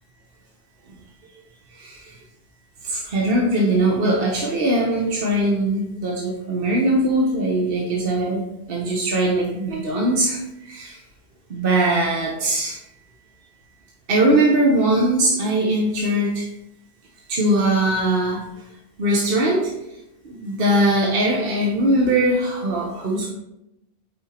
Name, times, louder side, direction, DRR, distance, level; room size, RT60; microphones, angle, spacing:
voice 1, 1.8-2.1 2.8-11.0 11.5-12.8 14.1-16.5 17.3-18.4 19.0-19.7 20.2-23.3, right 1 dB, 65° right, -1 dB, 1.2 m, -21 dB
8.6 x 4.9 x 2.9 m, 0.86 s
omnidirectional pair, 1.0 m